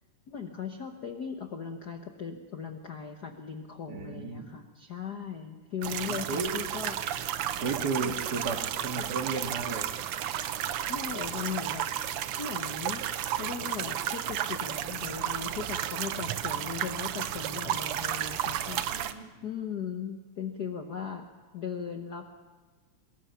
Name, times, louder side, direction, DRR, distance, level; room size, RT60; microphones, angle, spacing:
voice 1, 0.3-7.0 8.0-8.2 10.9-11.9 12.4-13.0 13.4-19.1 19.4-21.3 21.5-22.3, left 6 dB, 80° left, 4 dB, 0.9 m, -38 dB
voice 2, 3.9-4.5 6.1-6.6 7.6-9.9 18.9-19.3, right 4 dB, 40° right, 4 dB, 1.9 m, -34 dB
sound 1, 5.8-19.1, right 10 dB, 85° right, 1.2 m, -33 dB
23.0 x 21.0 x 5.7 m, 1.3 s
omnidirectional pair, 3.6 m